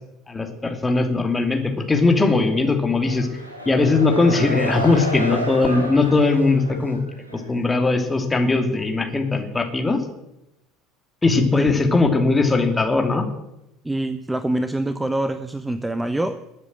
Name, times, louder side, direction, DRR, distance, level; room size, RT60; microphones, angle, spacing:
voice 1, 0.3-3.3 3.7-7.0 7.5-10.0 11.2-13.3, left 3 dB, 15° left, 4 dB, 2.9 m, -19 dB
sound 1, 3.0-7.5, equal, 85° right, 2.8 m, -30 dB
voice 2, 13.8-16.4, right 1 dB, 10° right, 11 dB, 1.0 m, -25 dB
21.0 x 8.2 x 7.7 m, 0.88 s
figure-of-eight pair, 70°, 0 cm